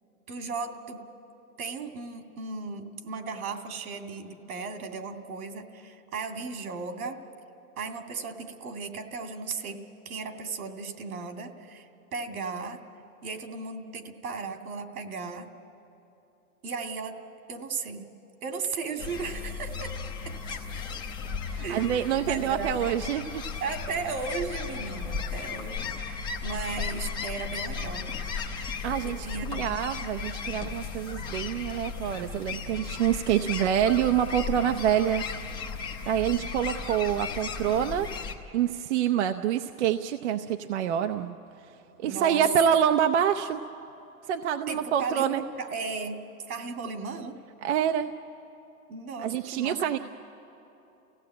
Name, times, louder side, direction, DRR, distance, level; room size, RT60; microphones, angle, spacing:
voice 1, 0.3-1.0 1.6-7.2 7.8-12.8 13.2-15.5 16.6-17.2 17.5-18.1 18.4-20.4 21.6-21.9 22.2-22.7 23.6-28.1 29.0-29.7 42.0-42.5 44.7-47.4 48.9-49.8, right 4 dB, 80° right, 5 dB, 2.5 m, -36 dB
sound 1, 19.0-38.3, left 5 dB, 10° left, 0.8 m, -35 dB
voice 2, 21.5-23.4 28.8-35.3 36.1-38.1 38.5-41.4 42.0-43.6 44.3-45.4 47.6-48.1 49.2-50.0, right 9 dB, 50° right, 7 dB, 0.7 m, -26 dB
29.5 x 16.5 x 8.7 m, 3.0 s
hypercardioid pair, 160°, 43 cm